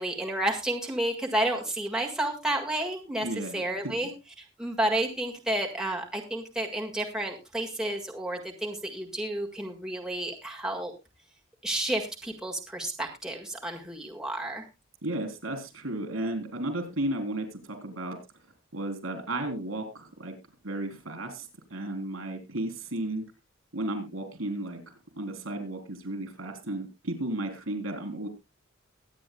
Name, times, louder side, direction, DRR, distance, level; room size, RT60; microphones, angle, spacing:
voice 1, 0.0-3.3 3.5-4.1 4.6-10.9 11.6-14.7, right 1 dB, 5° right, 0 dB, 1.8 m, -31 dB
voice 2, 3.2-4.1 15.0-18.2 18.7-20.4 20.6-23.3 23.7-24.8 25.2-28.3, right 1 dB, 75° right, 5 dB, 3.7 m, -34 dB
22.5 x 9.3 x 2.2 m, 0.24 s
head